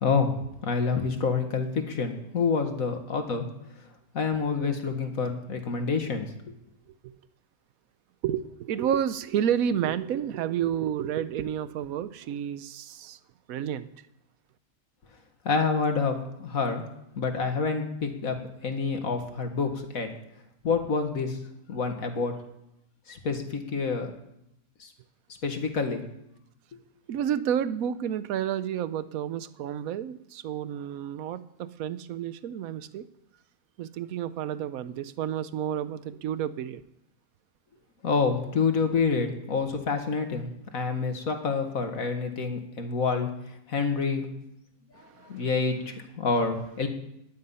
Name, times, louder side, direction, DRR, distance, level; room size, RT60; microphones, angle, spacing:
voice 1, 0.0-3.5 4.1-6.3 15.5-16.8 17.2-18.4 18.6-20.1 20.6-21.4 21.7-22.3 23.1-24.1 24.8-24.9 25.4-26.0 38.0-40.5 40.7-43.3 43.7-44.3 45.2-46.9, left 4 dB, 60° left, 2.0 m, -27 dB
voice 2, 8.2-13.2 13.5-13.9 27.1-33.1 33.8-36.8 44.9-45.5, right 9 dB, 70° right, 1.1 m, -30 dB
19.0 x 10.5 x 5.6 m
omnidirectional pair, 1.7 m